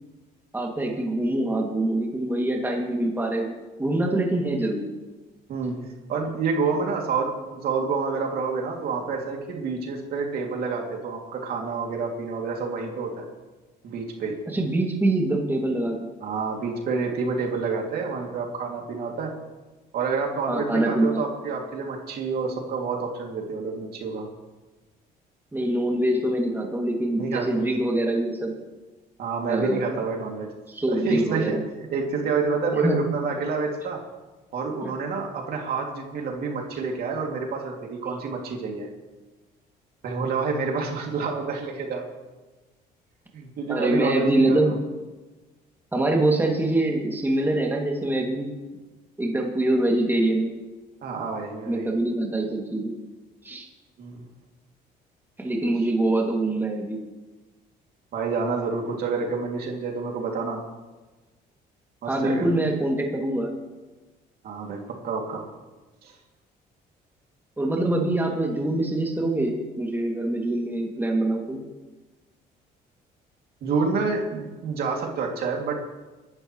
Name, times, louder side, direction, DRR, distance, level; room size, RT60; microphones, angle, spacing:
voice 1, 0.5-3.5 3.8-4.9 14.5-16.1 20.5-21.2 25.5-28.5 29.5-29.9 30.7-31.6 32.7-33.0 34.8-34.9 43.7-44.7 45.9-48.5 49.2-50.5 51.7-52.9 53.4-53.7 55.4-57.0 62.1-63.5 67.6-71.6, right 1 dB, 10° right, -1 dB, 2.7 m, -24 dB
voice 2, 6.1-13.3 13.8-14.4 16.2-19.3 19.9-24.3 27.2-27.5 29.2-30.5 30.9-31.6 31.9-34.0 34.5-38.9 40.0-42.0 43.3-44.7 51.0-51.9 54.0-54.2 58.1-60.6 62.0-62.5 64.4-65.4 66.0-66.1 73.6-75.8, right 4 dB, 65° right, 0 dB, 2.9 m, -28 dB
23.0 x 12.0 x 3.3 m, 1.2 s
cardioid pair, 110°, 17 cm